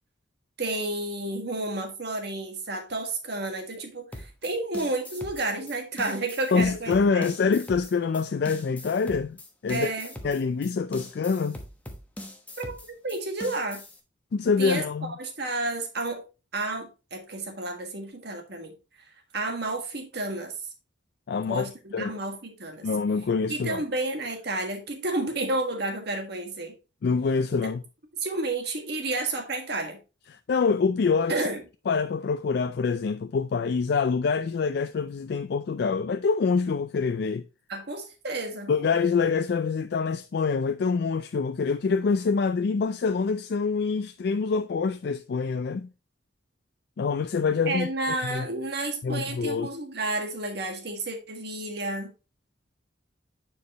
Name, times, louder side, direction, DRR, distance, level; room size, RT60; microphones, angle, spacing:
voice 1, 0.6-7.3 9.7-10.1 12.6-13.8 14.6-16.2 16.5-18.7 19.3-20.5 21.5-22.9 23.5-26.7 28.2-30.0 31.3-31.6 37.7-38.7 47.7-52.1, right 2 dB, 55° right, 1.7 m, -31 dB
sound 1, 4.1-14.0, left 1 dB, 10° left, 1.0 m, -42 dB
voice 2, 6.5-9.4 9.6-9.9 10.2-11.6 14.3-15.1 21.3-22.2 22.8-23.8 27.0-27.8 30.3-31.5 31.9-37.5 38.7-45.9 47.0-48.5 49.0-49.7, left 5 dB, 55° left, 0.3 m, -26 dB
9.5 x 4.7 x 2.9 m
head